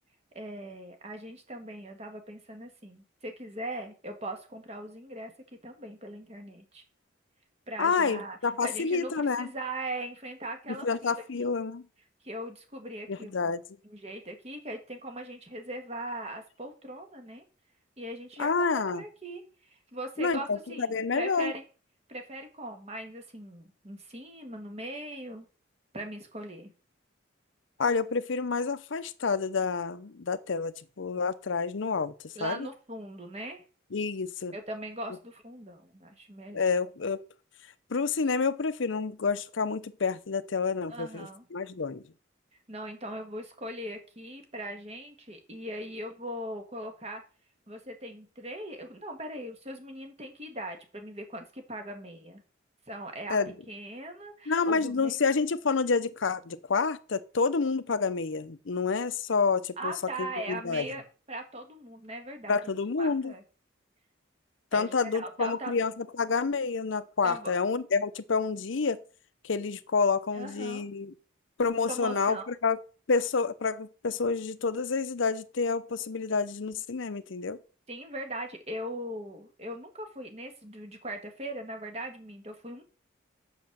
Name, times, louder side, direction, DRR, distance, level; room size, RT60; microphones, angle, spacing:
voice 1, 0.3-5.3 5.6-6.8 7.7-11.5 12.2-13.5 13.8-17.4 18.0-19.4 19.9-21.6 22.1-25.5 25.9-26.7 32.4-33.6 34.5-36.7 40.9-41.5 42.7-47.2 47.7-52.4 52.9-53.4 53.7-55.2 59.8-62.6 63.0-63.4 64.7-65.7 67.2-67.5 70.3-70.8 71.9-72.5 77.9-82.8, right 1 dB, 30° right, 1.7 m, -40 dB
voice 2, 7.8-9.5 10.8-11.8 13.1-13.6 18.4-19.0 20.2-21.5 27.8-32.1 32.4-32.7 33.9-34.5 36.5-37.2 37.9-42.0 53.3-53.5 54.5-59.9 60.2-60.9 62.5-63.3 64.7-69.0 69.4-71.1 71.6-72.8 73.1-77.6, left 4 dB, 70° left, 0.6 m, -28 dB
7.7 x 6.2 x 7.3 m
head